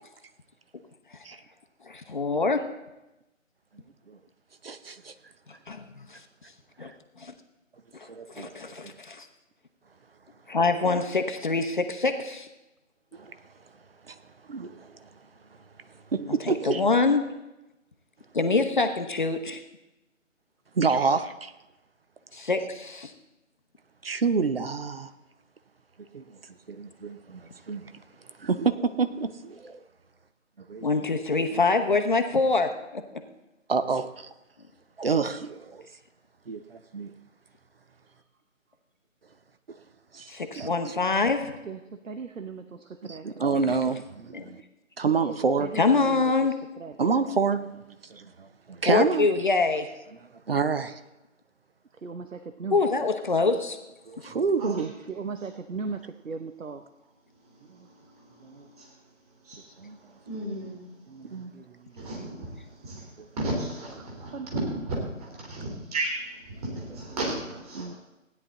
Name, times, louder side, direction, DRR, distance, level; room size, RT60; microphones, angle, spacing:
voice 1, 1.9-2.6 5.7-5.8 6.1-6.2 6.8-6.9 7.2-7.3 8.0-9.3 10.5-12.5 16.5-17.2 18.3-19.6 22.3-23.1 30.8-33.2 40.3-41.5 44.3-44.5 45.7-46.5 48.8-49.9 52.7-53.8, left 3 dB, 40° left, 6 dB, 0.8 m, -25 dB
voice 2, 4.6-5.1 8.1-8.5 8.8-8.9 13.1-13.4 14.1-14.2 14.5-15.1 16.1-16.8 20.8-21.5 24.0-25.1 26.1-26.2 26.7-27.9 28.4-29.8 30.7-31.0 33.7-34.3 35.0-35.9 36.5-37.1 39.7-39.8 40.1-40.3 40.5-40.9 43.1-44.6 45.0-45.7 47.0-47.8 48.1-49.3 50.5-51.0 54.1-54.9 59.8-60.0 61.3-61.5 67.7-67.9, right 5 dB, 45° right, 11 dB, 0.7 m, -28 dB
voice 3, 41.6-43.4 44.2-44.5 45.1-47.0 51.9-52.8 54.3-54.5 55.1-56.9 57.7-57.9 58.4-58.7 61.1-62.1 64.0-64.5 64.9-65.0, right 4 dB, 75° right, 9 dB, 1.0 m, -39 dB
voice 4, 57.4-59.0 59.4-61.4 61.9-68.0, right 1 dB, 30° right, -3 dB, 3.4 m, -35 dB
16.0 x 9.8 x 3.8 m, 0.99 s
figure-of-eight pair, 160°, 39 cm